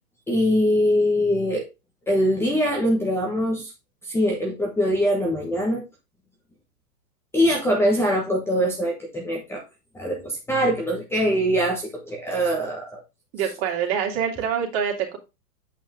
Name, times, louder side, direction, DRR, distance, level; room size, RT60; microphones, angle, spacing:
voice 1, 0.3-1.7 2.1-3.7 4.1-5.8 7.3-9.6 9.9-13.0, equal, 5° left, 0 dB, 1.2 m, -23 dB
voice 2, 13.3-15.2, right 8 dB, 40° right, 1 dB, 2.7 m, -25 dB
8.4 x 5.2 x 3.6 m, 0.25 s
hypercardioid pair, 145°, 47 cm